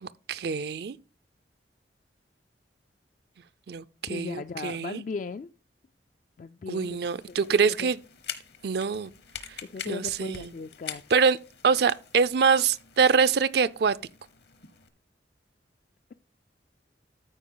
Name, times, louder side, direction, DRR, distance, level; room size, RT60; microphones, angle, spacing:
voice 1, 0.0-1.0 3.7-5.0 6.7-8.0 8.6-9.1 9.9-10.5 11.1-11.4 11.6-14.0, right 5 dB, 60° right, 0.4 m, -24 dB
voice 2, 4.0-5.5 6.4-7.4 7.7-7.9 9.6-11.0, left 4 dB, 45° left, 0.3 m, -37 dB
sound 1, 6.8-14.9, left 8 dB, 60° left, 1.1 m, -45 dB
13.5 x 4.8 x 3.8 m
head